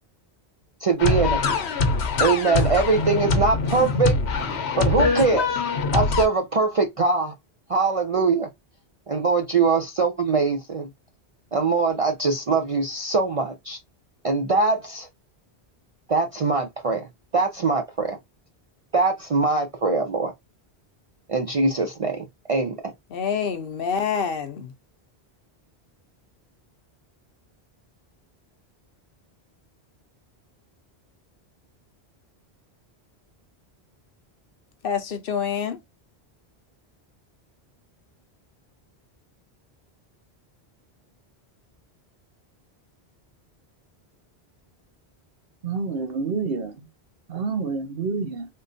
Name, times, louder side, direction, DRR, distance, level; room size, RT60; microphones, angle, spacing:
voice 1, 0.8-1.4 2.2-4.1 4.8-5.5 5.9-7.3 7.7-8.5 9.1-10.9 11.5-13.8 14.2-15.1 16.1-17.1 17.3-18.2 18.9-20.3 21.3-22.8, right 4 dB, 45° right, 0.5 m, -22 dB
sound 1, 1.0-6.3, left 3 dB, 90° left, 1.0 m, -23 dB
voice 2, 23.1-24.7 34.8-35.8, left 7 dB, 65° left, 0.8 m, -27 dB
voice 3, 45.6-46.9 47.3-48.5, right 4 dB, 65° right, 1.0 m, -28 dB
3.6 x 2.5 x 2.5 m
omnidirectional pair, 1.1 m